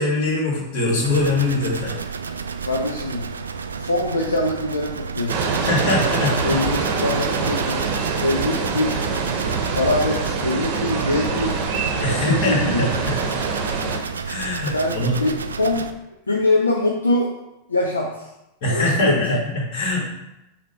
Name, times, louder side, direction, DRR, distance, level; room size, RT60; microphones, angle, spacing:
voice 1, 0.0-2.0 5.7-6.6 12.0-13.2 14.3-15.2 18.6-20.0, left 2 dB, 50° left, -3 dB, 2.3 m, -22 dB
sound 1, 1.0-15.9, right 5 dB, 70° right, 0.3 m, -31 dB
voice 2, 2.7-3.3 3.8-5.5 6.4-7.8 8.2-9.0 9.7-11.7 12.1-12.9 14.7-15.8 16.3-17.3 17.7-18.3 18.7-19.4, left 2 dB, 80° left, -1 dB, 0.6 m, -23 dB
sound 2, 5.3-14.0, right 5 dB, 45° right, 0.8 m, -25 dB
5.9 x 2.9 x 5.6 m, 0.90 s
figure-of-eight pair, 90°, 0 cm